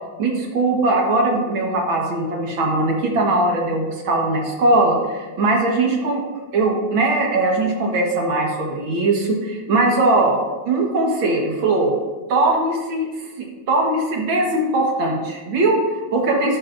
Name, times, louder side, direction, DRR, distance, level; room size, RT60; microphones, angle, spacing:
voice 1, 0.2-6.2 6.5-10.4 10.7-11.9 12.3-16.6, right 2 dB, 80° right, 0 dB, 2.2 m, -20 dB
12.0 x 9.4 x 2.6 m, 1.3 s
omnidirectional pair, 2.2 m